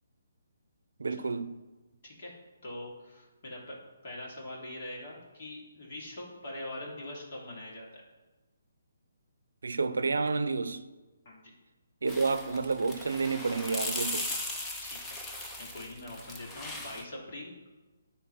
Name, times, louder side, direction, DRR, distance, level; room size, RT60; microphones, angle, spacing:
voice 1, 1.0-1.5 9.6-10.8 12.0-14.3, right 4 dB, 85° right, 0.6 m, -30 dB
voice 2, 2.6-3.8 4.0-8.0 11.2-11.5 14.8-15.2 15.5-17.5, left 1 dB, 45° left, 3.0 m, -43 dB
sound 1, 12.1-17.0, left 1 dB, 10° left, 0.8 m, -38 dB
10.0 x 3.9 x 5.9 m
hypercardioid pair, 160°, 0 cm